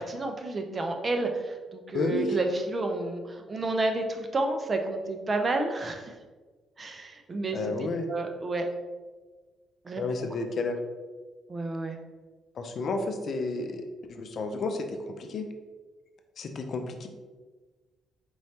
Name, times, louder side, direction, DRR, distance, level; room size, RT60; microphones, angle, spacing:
voice 1, 0.0-6.1 6.8-7.6 8.1-8.7 9.8-10.0 11.5-12.0, right 2 dB, 35° right, 4 dB, 0.6 m, -30 dB
voice 2, 1.9-2.4 7.5-8.0 10.0-10.8 12.6-15.5 16.4-17.1, left 3 dB, 55° left, 5 dB, 0.5 m, -31 dB
4.5 x 3.2 x 2.8 m, 1.3 s
cardioid pair, 90°, 0 cm